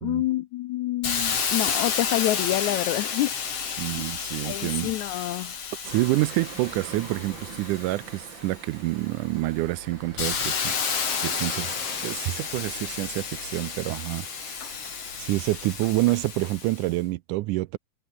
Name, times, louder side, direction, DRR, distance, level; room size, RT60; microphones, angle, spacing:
voice 1, 0.0-3.3 4.0-4.1 4.4-5.5, left 16 dB, 75° left, 1.9 m, -27 dB
Hiss, 1.0-8.6 9.1-16.9, left 6 dB, 50° left, 3.8 m, -31 dB
voice 2, 3.8-4.9 5.8-10.8 11.2-11.7 12.0-14.7 15.2-17.8, right 19 dB, 80° right, 2.0 m, -27 dB
sound 1, 5.8-16.2, right 6 dB, 40° right, 2.6 m, -45 dB
omnidirectional pair, 3.7 m